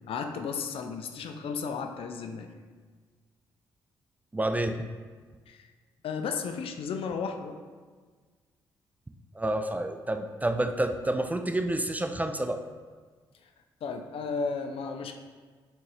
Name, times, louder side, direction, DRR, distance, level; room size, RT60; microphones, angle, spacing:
voice 1, 0.1-2.5 5.5-5.6 6.0-7.6 13.8-15.1, left 5 dB, 60° left, 6 dB, 0.4 m, -34 dB
voice 2, 4.3-4.8 9.4-12.6, right 1 dB, 15° right, 6 dB, 0.3 m, -29 dB
5.9 x 2.5 x 3.3 m, 1.5 s
hypercardioid pair, 40°, 11 cm